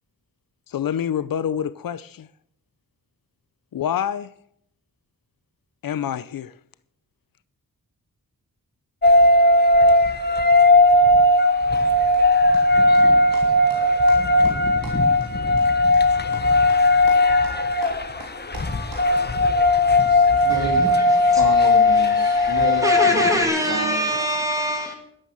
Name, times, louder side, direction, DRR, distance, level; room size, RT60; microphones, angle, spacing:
voice 1, 0.7-2.3 3.7-4.3 5.8-6.5, left 9 dB, 85° left, 0.7 m, -26 dB
sound 1, 9.0-23.4, left 2 dB, 30° left, 1.4 m, -17 dB
voice 2, 13.3-13.8 14.1-14.2 14.4-14.5 14.8-15.0 16.3-16.4 17.1-17.5 17.8-19.0 20.1-20.9 21.2-24.1, right 3 dB, 80° right, 3.2 m, -33 dB
voice 3, 22.0-24.9, equal, 10° right, 2.5 m, -24 dB
12.0 x 12.0 x 7.6 m
wide cardioid pair, 155°, 34 cm